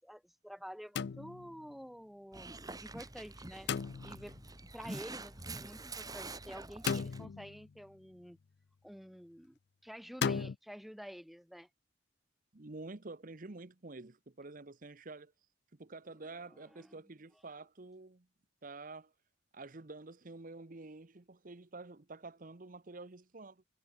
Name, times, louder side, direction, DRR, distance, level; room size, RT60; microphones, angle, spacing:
voice 1, 0.0-2.6 2.8-3.7 4.0-4.3 4.7-8.4 8.8-11.7 16.5-17.0, equal, ahead, 1.1 m, -49 dB
sound 1, 1.0-1.7 3.7-4.4 6.9-7.7 10.2-10.6, left 6 dB, 60° left, 0.4 m, -36 dB
Dog, 2.3-7.2, right 3 dB, 20° right, 3.5 m, -46 dB
voice 2, 12.5-15.3 15.7-18.3 18.6-19.1 19.5-23.6, right 3 dB, 45° right, 1.0 m, -49 dB
head